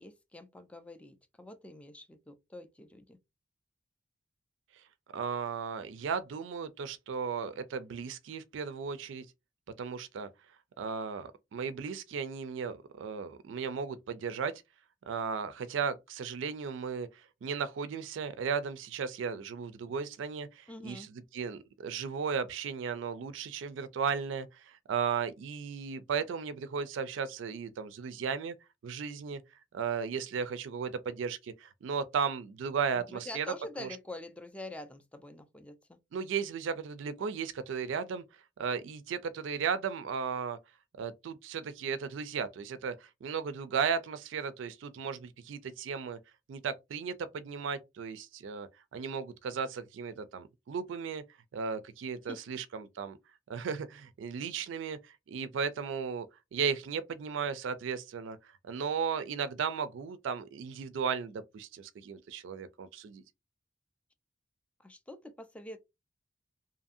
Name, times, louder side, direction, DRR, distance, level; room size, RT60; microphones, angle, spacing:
voice 1, 0.0-3.2 20.7-21.1 33.0-36.0 52.3-52.4 64.8-65.8, left 1 dB, 5° left, 0.3 m, -45 dB
voice 2, 5.1-9.3 9.8-10.3 10.8-14.5 15.1-28.5 28.8-29.4 29.7-33.5 33.8-33.9 36.1-40.6 41.0-46.2 46.5-51.2 51.5-53.2 53.5-56.3 56.5-63.2, right 6 dB, 70° right, 0.3 m, -35 dB
2.7 x 2.6 x 2.4 m
head